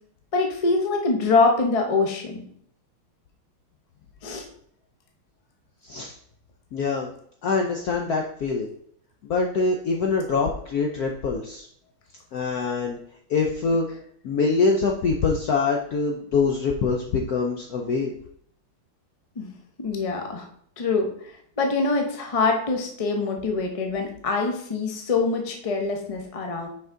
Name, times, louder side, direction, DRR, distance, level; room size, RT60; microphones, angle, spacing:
voice 1, 0.3-2.4 4.2-4.5 19.4-19.5 19.8-20.5 20.8-21.1 21.6-26.7, left 3 dB, 40° left, 2 dB, 0.4 m, -24 dB
voice 2, 5.8-6.1 6.7-7.1 7.4-8.7 9.2-11.7 12.3-13.0 13.3-13.9 14.2-18.1, left 4 dB, 70° left, 2 dB, 0.9 m, -24 dB
5.7 x 5.3 x 3.8 m, 0.65 s
omnidirectional pair, 2.3 m